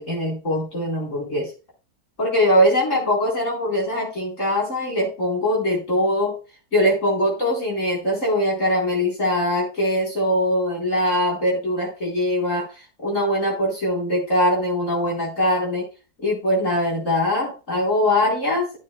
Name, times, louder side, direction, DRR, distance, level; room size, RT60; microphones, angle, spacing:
voice 1, 0.0-1.5 2.2-6.3 6.7-12.7 13.0-15.9 16.2-18.7, left 1 dB, 50° left, -3 dB, 4.7 m, -22 dB
13.5 x 8.4 x 2.3 m, 0.32 s
omnidirectional pair, 1.7 m